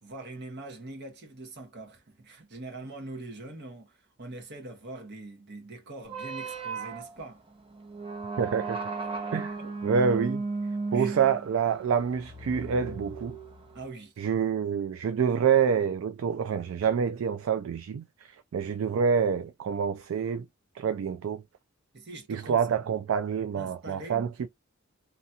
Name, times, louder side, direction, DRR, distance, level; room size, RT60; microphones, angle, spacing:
voice 1, 0.0-7.4 9.3-9.7 10.9-11.2 13.7-14.1 21.9-22.6 22.9-23.0 23.5-24.3, right 2 dB, 55° right, 1.3 m, -43 dB
sound 1, 6.1-13.9, right 3 dB, 25° right, 0.8 m, -35 dB
voice 2, 8.4-8.8 9.3-9.5 9.8-10.4 10.9-13.4 14.2-20.5 20.8-21.4 22.3-24.5, right 7 dB, 70° right, 0.3 m, -27 dB
2.9 x 2.8 x 2.3 m
head